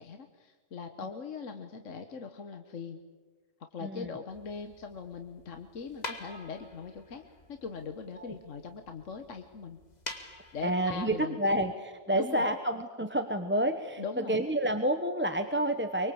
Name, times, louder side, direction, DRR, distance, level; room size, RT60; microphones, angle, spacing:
voice 1, 0.0-3.0 3.6-7.2 7.5-9.8 10.5-11.6 12.1-12.5 14.0-14.4, left 5 dB, 65° left, 6 dB, 1.5 m, -41 dB
voice 2, 3.8-4.1 8.2-8.3 10.6-16.1, right 1 dB, 10° right, 7 dB, 0.9 m, -29 dB
sound 1, 4.3-11.2, left 2 dB, 30° left, 2.1 m, -47 dB
24.0 x 23.5 x 8.6 m, 1.4 s
omnidirectional pair, 1.4 m